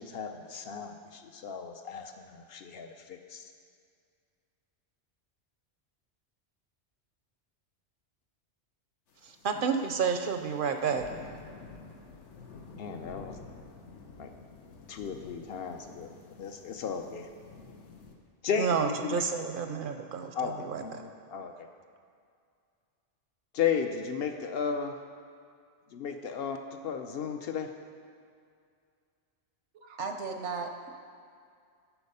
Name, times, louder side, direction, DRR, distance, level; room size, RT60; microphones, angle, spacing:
voice 1, 0.0-3.5 12.8-13.4 14.2-14.3 14.9-16.1 16.4-17.3 18.4-18.7 19.0-19.3 20.3-21.5 23.5-25.0 25.9-27.7, left 7 dB, 65° left, 6 dB, 0.8 m, -34 dB
sound 1, 9.1-18.1, left 4 dB, 85° left, 1.1 m, -50 dB
voice 2, 9.2-11.1 18.6-21.0, right 6 dB, 60° right, 6 dB, 0.6 m, -30 dB
voice 3, 29.7-30.9, right 4 dB, 85° right, 5 dB, 1.1 m, -36 dB
11.5 x 4.2 x 5.5 m, 2.3 s
omnidirectional pair, 1.2 m